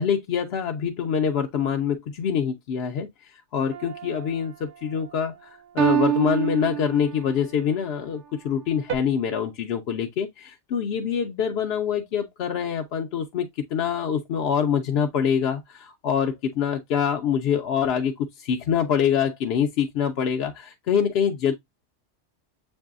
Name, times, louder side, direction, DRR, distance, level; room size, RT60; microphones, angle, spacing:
voice 1, 0.0-21.5, left 8 dB, 65° left, 0.7 m, -25 dB
sound 1, 3.7-4.4 5.8-7.4 8.9-9.0, right 11 dB, 60° right, 0.6 m, -26 dB
7.4 x 2.6 x 2.3 m
omnidirectional pair, 1.2 m